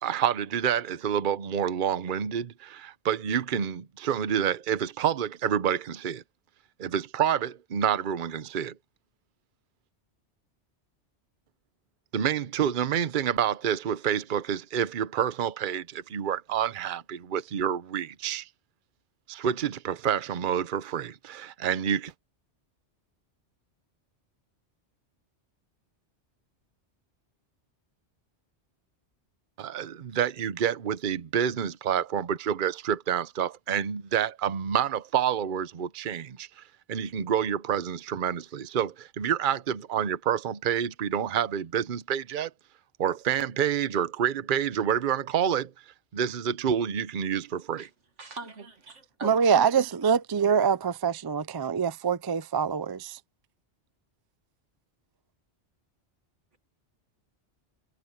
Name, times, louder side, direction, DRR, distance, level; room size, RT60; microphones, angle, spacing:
voice 1, 0.0-6.2 6.8-8.7 12.1-18.5 19.3-22.1 29.6-36.5 36.9-42.5 43.0-45.7 46.1-47.9, right 9 dB, 50° right, 0.9 m, -28 dB
voice 2, 48.2-49.4, right 4 dB, 85° right, 2.3 m, -41 dB
voice 3, 49.2-53.2, right 6 dB, 35° right, 0.4 m, -25 dB
omnidirectional pair, 1.2 m